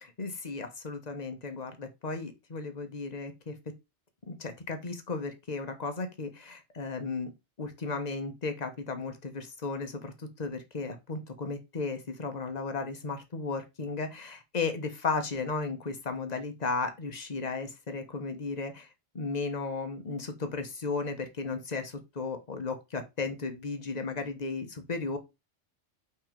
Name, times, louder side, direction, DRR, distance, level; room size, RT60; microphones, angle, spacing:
voice 1, 0.0-3.5 4.3-7.3 7.6-18.9 19.1-25.2, left 4 dB, 35° left, 1.2 m, -35 dB
6.0 x 3.6 x 5.1 m
omnidirectional pair, 1.2 m